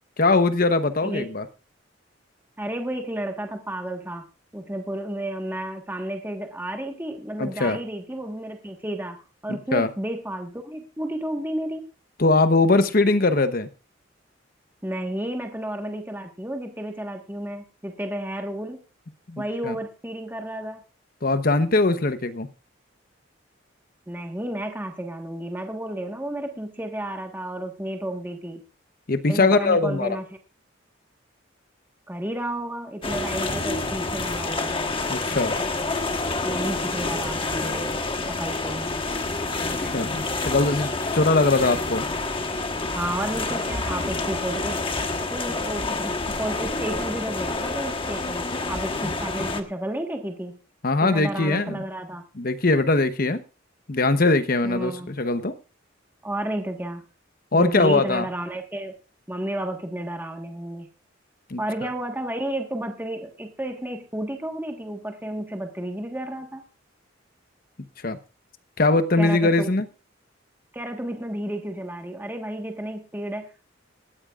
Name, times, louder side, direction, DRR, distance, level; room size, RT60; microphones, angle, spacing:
voice 1, 0.2-1.4 7.4-7.8 9.7-9.9 12.2-13.7 19.3-19.7 21.2-22.5 29.1-30.2 35.1-35.5 39.8-42.0 50.8-51.8 52.4-53.4 53.9-55.5 57.5-58.3 61.5-61.9 68.0-68.2 68.8-69.8, left 3 dB, 50° left, 10 dB, 0.9 m, -21 dB
voice 2, 2.6-4.2 4.5-11.8 14.8-18.8 19.4-20.8 24.1-28.6 29.3-30.2 32.1-34.8 36.4-37.9 38.3-38.9 42.9-44.8 45.3-50.6 51.0-52.2 54.6-55.1 56.2-57.0 57.5-58.9 59.3-60.9 61.6-66.6 69.2-69.7 70.7-73.7, right 1 dB, 10° right, 3 dB, 1.4 m, -32 dB
sound 1, 33.0-49.6, left 3 dB, 25° left, 1.2 m, -28 dB
18.5 x 14.0 x 2.4 m, 0.34 s
head